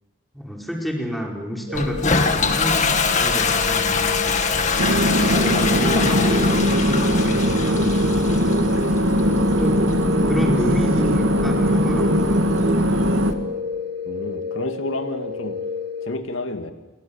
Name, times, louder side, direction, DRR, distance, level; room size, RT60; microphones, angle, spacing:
voice 1, 0.3-2.9 3.1-4.7 5.2-8.3 9.1-9.8 10.2-12.1, equal, ahead, 0 dB, 4.8 m, -28 dB
Toilet flush, 1.7-13.3, left 4 dB, 35° left, 2.1 m, -25 dB
sound 1, 1.7-16.1, left 5 dB, 50° right, 3.6 m, -31 dB
sound 2, 4.8-13.3, equal, 80° right, 2.1 m, -20 dB
voice 2, 14.1-15.6 16.0-16.7, left 2 dB, 75° left, 7 dB, 2.3 m, -30 dB
30.0 x 23.5 x 7.3 m, 1.1 s
head